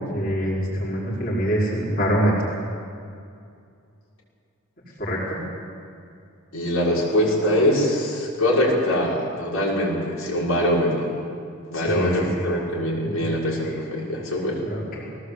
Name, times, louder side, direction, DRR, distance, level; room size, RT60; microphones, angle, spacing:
voice 1, 0.1-2.5 5.0-5.4 11.7-12.5 14.6-15.0, equal, 45° left, -5 dB, 4.9 m, -24 dB
voice 2, 6.5-11.2 11.7-14.6, equal, 90° left, -5 dB, 6.4 m, -23 dB
20.0 x 18.5 x 8.3 m, 2.4 s
head